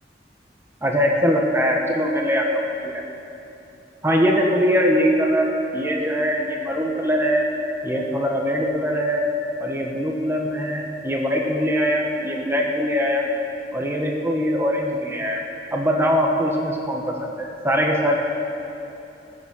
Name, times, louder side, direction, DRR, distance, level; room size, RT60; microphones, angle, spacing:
voice 1, 0.8-3.0 4.0-7.5 7.8-9.2 9.6-13.2 13.7-15.4 15.7-17.0 17.4-18.2, equal, 15° right, 0 dB, 1.1 m, -22 dB
20.5 x 7.1 x 6.3 m, 2.9 s
head